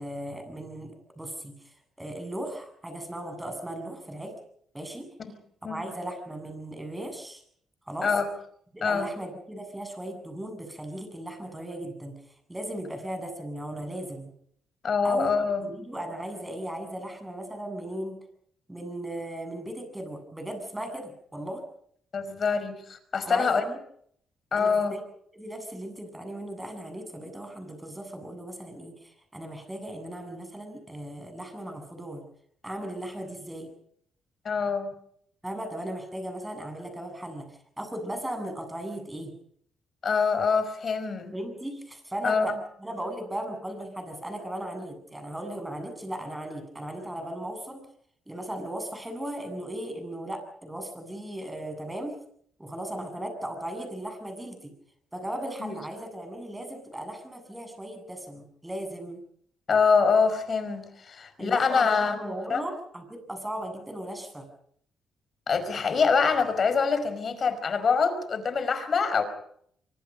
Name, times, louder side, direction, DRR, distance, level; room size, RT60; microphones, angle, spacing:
voice 1, 0.0-1.5 2.0-4.3 4.7-5.1 5.6-7.4 7.9-8.1 8.7-12.1 12.5-14.3 15.0-18.2 18.7-21.6 23.2-23.8 24.6-25.0 25.3-32.2 32.6-33.7 35.4-37.5 37.8-39.3 41.3-47.8 48.3-52.2 52.6-54.7 55.1-59.2 61.4-64.5, right 1 dB, 10° right, 7 dB, 7.9 m, -37 dB
voice 2, 14.8-15.7 22.1-23.6 24.5-24.9 34.4-34.9 40.0-41.3 42.2-42.5 55.6-55.8 59.7-62.6 65.5-69.2, left 5 dB, 45° left, 11 dB, 5.2 m, -25 dB
25.0 x 24.5 x 5.4 m, 0.65 s
cardioid pair, 90°, 0 cm